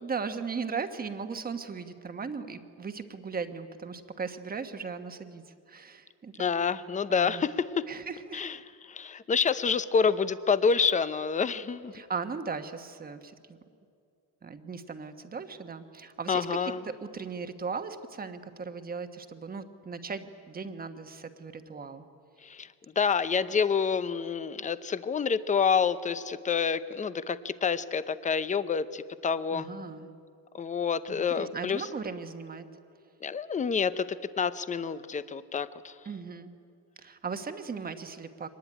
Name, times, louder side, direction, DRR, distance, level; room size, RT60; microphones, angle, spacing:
voice 1, 0.0-6.4 7.1-7.4 7.9-8.4 11.9-13.6 14.4-22.0 29.5-30.1 31.1-32.7 36.0-36.5 37.0-38.5, right 5 dB, 20° right, 8 dB, 1.3 m, -38 dB
voice 2, 6.4-7.9 8.3-8.6 8.9-11.9 16.3-16.8 22.4-22.7 23.0-29.7 30.5-31.8 33.2-35.9, left 6 dB, 20° left, 14 dB, 0.7 m, -28 dB
24.0 x 19.5 x 10.0 m, 2.4 s
cardioid pair, 150°, 41 cm